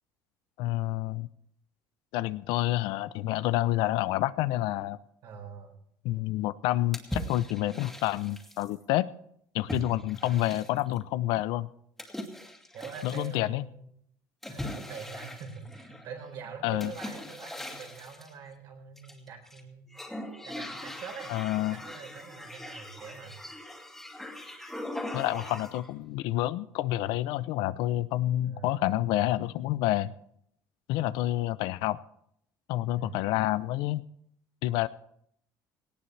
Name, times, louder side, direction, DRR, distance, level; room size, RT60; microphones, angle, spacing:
voice 1, 0.6-1.3 2.1-5.0 6.0-9.1 9.5-11.7 13.0-13.6 16.6-16.9 21.3-21.8 25.1-30.1 30.9-32.0 32.7-34.0 34.6-34.9, left 15 dB, 75° left, 14 dB, 0.7 m, -28 dB
voice 2, 5.2-5.8 10.2-10.5 12.7-13.9 14.5-19.9 20.4-21.3 21.6-23.4 28.4-28.8 30.9-31.1 33.0-33.2, right 6 dB, 60° right, 2 dB, 4.5 m, -44 dB
sound 1, 6.9-8.7 9.7-11.0 12.0-13.4 14.4-16.1 16.8-18.3 19.0-19.6 19.9-25.9, left 1 dB, 5° left, 2.3 m, -40 dB
18.5 x 18.0 x 3.4 m, 0.69 s
cardioid pair, 145°, 8 cm